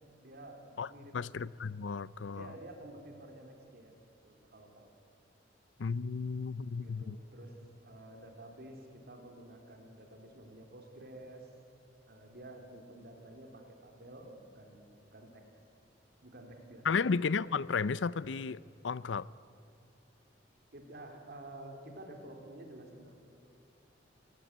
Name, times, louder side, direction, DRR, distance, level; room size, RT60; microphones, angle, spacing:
voice 1, 0.2-1.2 2.3-3.9 4.2-4.9 6.8-7.6 7.8-11.5 12.1-15.4 16.2-17.0 20.7-23.2, right 1 dB, 60° right, 3.8 m, -51 dB
voice 2, 1.1-2.5 5.8-7.2 16.8-18.6 18.8-19.3, left 5 dB, 80° left, 0.6 m, -33 dB
25.5 x 16.5 x 9.5 m
head